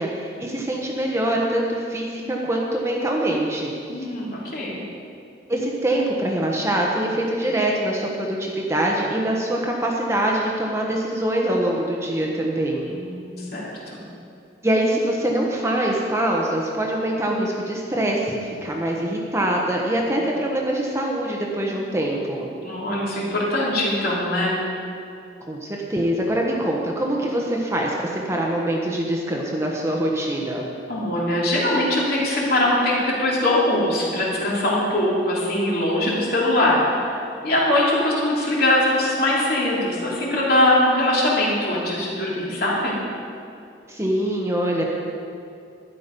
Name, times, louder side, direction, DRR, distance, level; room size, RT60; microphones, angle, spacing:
voice 1, 0.0-3.7 4.0-4.1 5.5-12.9 14.6-22.5 25.5-30.7 43.9-44.8, right 1 dB, 15° right, -1 dB, 1.1 m, -24 dB
voice 2, 3.9-4.8 12.8-13.6 13.9-14.0 22.6-24.6 30.9-37.1 37.4-43.0, left 1 dB, 55° left, -5 dB, 3.2 m, -22 dB
12.5 x 10.5 x 5.3 m, 2.5 s
head